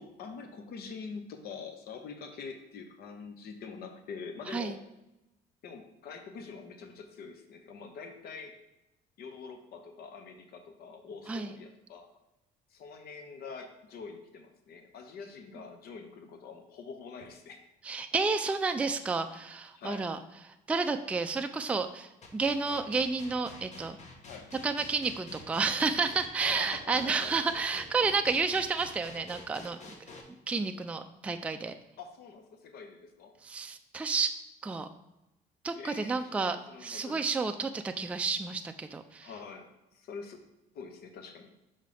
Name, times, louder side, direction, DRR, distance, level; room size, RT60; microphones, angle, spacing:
voice 1, 0.0-4.8 5.6-8.5 9.2-12.1 12.7-17.6 19.7-20.1 24.2-24.5 26.4-27.3 32.0-33.3 35.7-37.3 39.2-39.7 39.9-40.4 40.7-41.5, left 5 dB, 65° left, 6 dB, 0.8 m, -45 dB
voice 2, 17.8-20.2 20.4-24.0 24.6-29.8 30.5-31.7 33.4-34.4 34.6-34.9 35.6-39.3, right 4 dB, 10° right, 7 dB, 0.3 m, -31 dB
sound 1, 22.2-30.2, left 2 dB, 45° left, 1.1 m, -48 dB
5.6 x 5.1 x 3.3 m, 0.92 s
cardioid pair, 110°, 17 cm